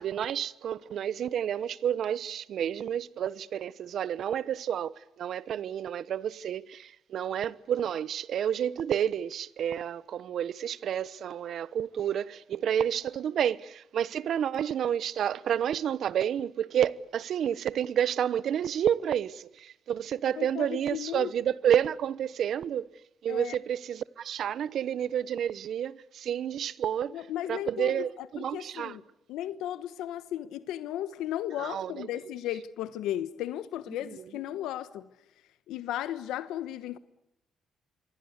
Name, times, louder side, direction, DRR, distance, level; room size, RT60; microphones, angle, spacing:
voice 1, 0.0-22.9 23.2-27.2 27.5-29.0 31.6-32.1 34.1-34.2, right 9 dB, 65° right, 1.0 m, -30 dB
voice 2, 20.4-21.3 23.3-23.6 27.1-29.0 29.3-35.1 35.7-37.0, left 12 dB, 90° left, 1.1 m, -35 dB
27.0 x 23.5 x 8.2 m
cardioid pair, 90°, 0 cm